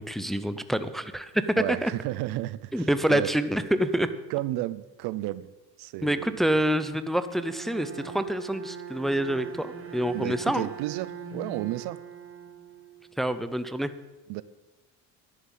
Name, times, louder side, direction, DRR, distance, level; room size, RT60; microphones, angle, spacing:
voice 1, 0.0-1.9 2.7-4.1 6.0-10.7 13.2-13.9, right 1 dB, ahead, 11 dB, 0.6 m, -27 dB
voice 2, 1.6-3.3 4.3-5.5 5.8-6.3 10.1-12.0 14.3-14.4, right 16 dB, 80° right, 17 dB, 0.7 m, -32 dB
Bowed string instrument, 7.2-13.2, right 6 dB, 35° right, 1.7 m, -42 dB
11.0 x 7.4 x 9.0 m, 1.1 s
cardioid pair, 110°, 38 cm